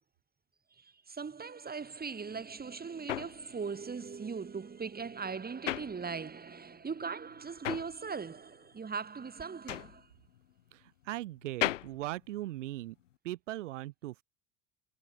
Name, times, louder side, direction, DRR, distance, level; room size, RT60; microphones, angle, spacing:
voice 1, 0.7-10.1, right 5 dB, 25° right, 4.6 m, -40 dB
sound 1, 2.3-6.6 6.9-13.1, left 13 dB, 85° left, 0.7 m, -39 dB
voice 2, 10.7-12.9 13.2-14.2, right 16 dB, 75° right, 3.3 m, -39 dB
hypercardioid pair, 70°, 36 cm